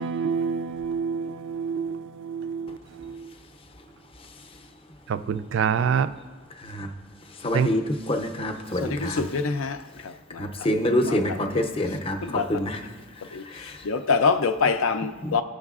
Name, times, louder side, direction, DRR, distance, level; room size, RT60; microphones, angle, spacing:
voice 1, 0.0-3.3 5.1-6.1 7.5-7.7, right 6 dB, 60° right, 0.3 m, -27 dB
voice 2, 7.4-9.2 10.4-12.9 13.5-13.8 15.2-15.4, left 1 dB, 25° left, 0.6 m, -26 dB
voice 3, 8.8-9.8 10.3-10.4 11.1-11.2 12.2-12.5 13.3-13.4 13.8-15.4, left 5 dB, 75° left, 0.5 m, -24 dB
14.5 x 6.5 x 2.4 m
head